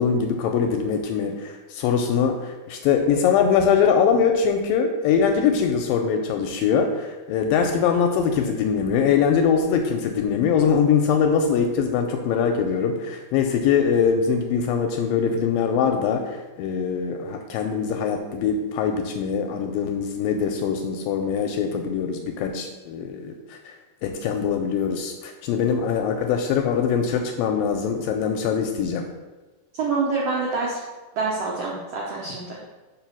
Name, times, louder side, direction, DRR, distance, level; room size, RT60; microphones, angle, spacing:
voice 1, 0.0-23.7 24.0-29.1, left 6 dB, 80° left, 4 dB, 2.1 m, -22 dB
voice 2, 29.8-30.8 31.2-32.7, right 4 dB, 85° right, -4 dB, 1.4 m, -26 dB
5.5 x 4.8 x 6.0 m, 1.2 s
omnidirectional pair, 4.4 m